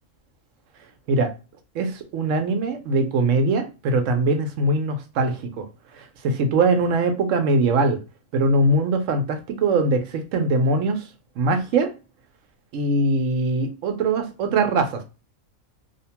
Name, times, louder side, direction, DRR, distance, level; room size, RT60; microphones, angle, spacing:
voice 1, 1.7-5.7 5.9-8.0 8.3-11.1 11.4-11.9 12.7-15.0, right 2 dB, 75° right, 0.9 m, -22 dB
2.7 x 2.1 x 2.8 m
omnidirectional pair, 1.4 m